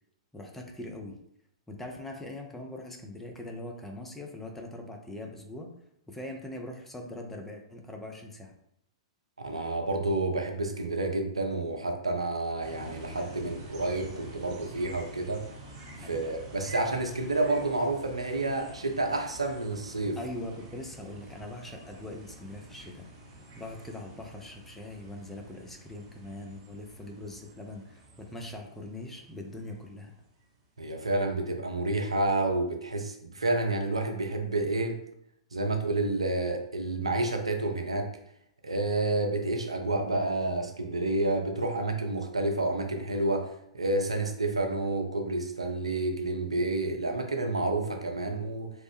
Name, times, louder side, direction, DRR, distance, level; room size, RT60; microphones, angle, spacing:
voice 1, 0.3-1.2 1.7-5.7 6.1-8.6 16.0-16.3 20.2-23.1 23.6-30.1, left 1 dB, 5° left, 2 dB, 0.4 m, -42 dB
voice 2, 9.4-15.4 16.1-20.2 30.8-35.0 35.5-38.1 38.6-48.7, right 2 dB, 80° right, 3 dB, 0.5 m, -29 dB
sound 1, 12.6-30.6, right 2 dB, 35° right, 0.6 m, -48 dB
3.1 x 2.0 x 3.1 m, 0.73 s
figure-of-eight pair, 105°, 3 cm